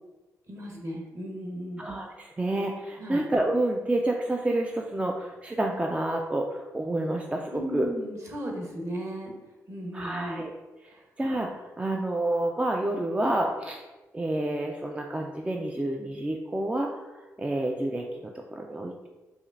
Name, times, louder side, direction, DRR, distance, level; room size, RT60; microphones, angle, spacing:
voice 1, 0.5-1.9 3.0-3.2 7.5-9.3 9.7-10.4, equal, 45° right, 0 dB, 1.1 m, -36 dB
voice 2, 1.8-7.9 9.9-10.5 10.8-11.5 11.8-13.8 14.1-17.0 17.4-19.1, right 1 dB, 15° right, 1 dB, 0.4 m, -29 dB
4.8 x 2.5 x 2.6 m, 1.2 s
supercardioid pair, 55°, 7 cm